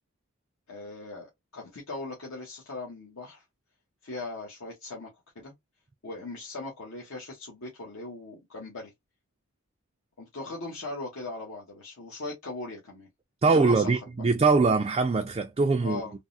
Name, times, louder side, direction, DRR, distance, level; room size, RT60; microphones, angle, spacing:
voice 1, 0.7-1.3 1.5-3.4 4.0-5.1 5.3-5.5 6.0-8.9 10.2-13.1 13.5-13.9 15.8-16.1, left 2 dB, 65° left, 0.9 m, -39 dB
voice 2, 13.4-16.0, right 4 dB, 25° right, 0.3 m, -22 dB
3.4 x 2.0 x 2.5 m
head